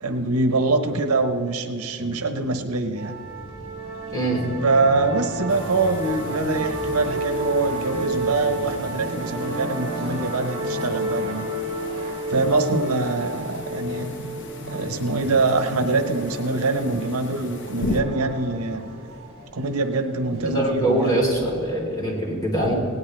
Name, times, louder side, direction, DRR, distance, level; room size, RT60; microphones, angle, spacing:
voice 1, 0.0-3.1 4.6-11.5 12.3-14.1 14.7-18.8 19.5-21.2 22.6-22.7, right 3 dB, 80° right, 7 dB, 1.0 m, -24 dB
sound 1, 3.0-21.7, right 1 dB, 60° right, 3.1 m, -31 dB
voice 2, 4.1-4.4 20.4-22.7, right 1 dB, 20° left, -2 dB, 3.6 m, -23 dB
sound 2, 5.5-18.0, left 2 dB, 55° left, 1.1 m, -39 dB
19.0 x 18.0 x 3.3 m, 2.5 s
head